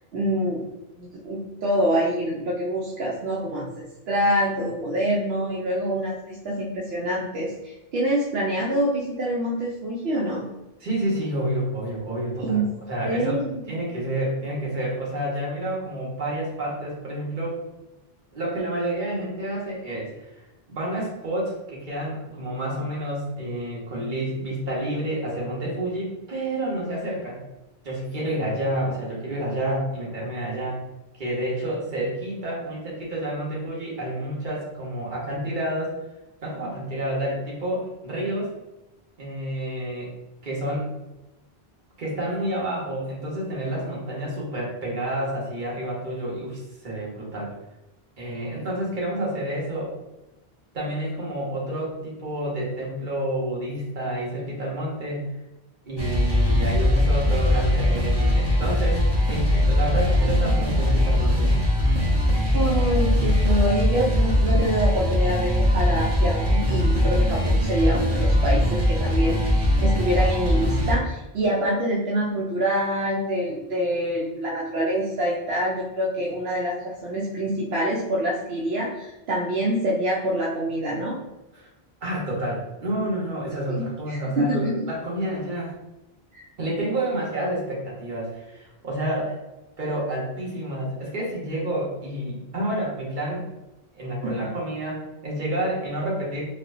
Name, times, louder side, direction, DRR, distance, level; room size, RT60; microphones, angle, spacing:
voice 1, 0.1-0.6 1.0-10.5 12.4-12.8 13.0-13.8 62.5-81.2 83.7-84.9 86.3-86.4 94.2-94.3, equal, 75° right, -4 dB, 0.8 m, -26 dB
voice 2, 10.8-12.6 12.9-13.4 13.7-17.6 18.3-20.3 20.7-27.4 27.8-30.8 31.1-36.0 36.4-38.5 39.2-40.1 40.4-40.9 42.0-47.5 48.2-49.9 50.7-55.3 55.8-61.5 81.5-81.7 82.0-85.7 86.6-89.4 89.8-93.5 93.9-96.4, right 1 dB, 50° right, -4 dB, 1.2 m, -29 dB
sound 1, 56.0-70.9, left 1 dB, 30° right, 0.6 m, -21 dB
4.3 x 2.1 x 2.5 m, 0.97 s
omnidirectional pair, 1.1 m